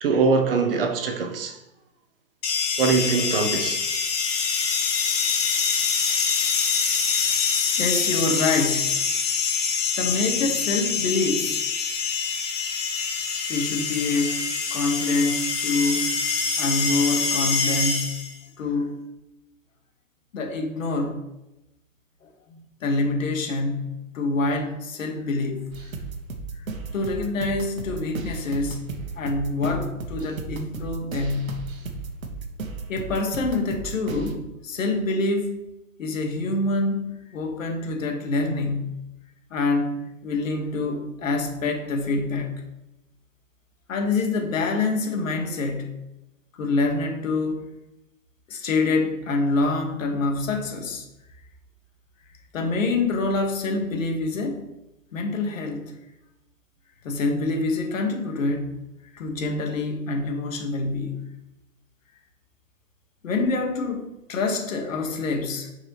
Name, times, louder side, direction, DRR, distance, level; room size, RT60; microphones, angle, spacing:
voice 1, 0.0-1.5 2.8-3.8, right 4 dB, 40° right, 0.9 m, -22 dB
sound 1, 2.4-18.4, left 6 dB, 25° left, 0.9 m, -25 dB
voice 2, 7.8-8.9 10.0-11.6 13.5-18.2 18.6-19.0 20.3-21.2 22.2-25.7 26.9-28.9 29.2-31.6 32.9-35.6 36.0-39.0 39.5-42.6 43.9-46.0 46.5-47.7 48.5-51.1 52.5-54.7 55.1-55.9 57.0-58.8 59.1-61.3 63.2-65.7, left 3 dB, 60° left, 1.6 m, -26 dB
sound 2, 25.7-34.3, right 3 dB, 70° right, 1.3 m, -35 dB
9.8 x 4.7 x 3.0 m
hypercardioid pair, 150°, 44 cm